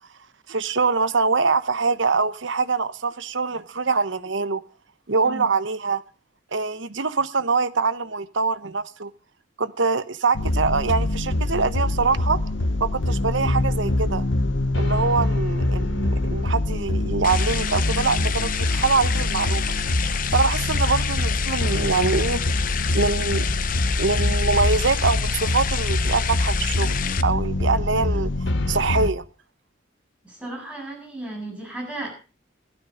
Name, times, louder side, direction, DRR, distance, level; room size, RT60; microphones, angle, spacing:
voice 1, 0.5-4.6 5.1-6.0 6.5-9.1 9.6-12.4 12.8-14.2 14.7-19.6 20.3-22.4 22.9-23.5 24.0-28.3 28.7-29.2, right 4 dB, 70° right, 1.0 m, -24 dB
sound 1, 10.3-29.1, left 1 dB, 70° left, 1.1 m, -24 dB
sound 2, 17.2-27.2, left 9 dB, 45° left, 0.8 m, -29 dB
voice 2, 30.2-32.1, right 2 dB, 5° right, 7.7 m, -34 dB
16.0 x 12.5 x 5.2 m
head